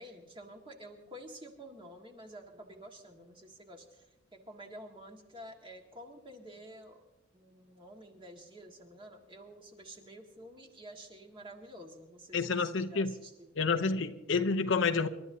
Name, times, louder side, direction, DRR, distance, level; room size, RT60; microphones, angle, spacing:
voice 1, 0.0-4.0 4.5-7.0 7.3-13.5, right 1 dB, 25° right, 2 dB, 1.8 m, -50 dB
voice 2, 12.3-13.1 13.6-15.1, left 4 dB, 60° left, 7 dB, 0.7 m, -29 dB
27.5 x 12.5 x 2.8 m, 1.1 s
head